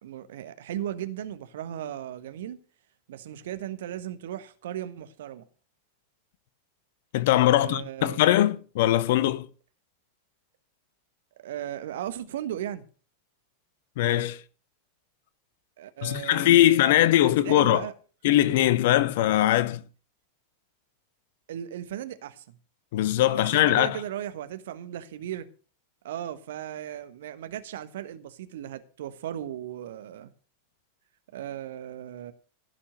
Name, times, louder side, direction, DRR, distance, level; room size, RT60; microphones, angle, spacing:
voice 1, 0.0-2.6 3.1-5.4 7.5-8.4 11.4-12.8 15.8-17.9 21.5-22.4 23.3-25.5 26.0-30.3 31.3-32.3, right 11 dB, 55° right, 1.3 m, -36 dB
voice 2, 7.1-9.5 14.0-14.4 16.0-17.8 18.2-19.8 22.9-24.0, left 13 dB, 50° left, 0.9 m, -21 dB
16.5 x 6.0 x 6.4 m
figure-of-eight pair, 90°, 0 cm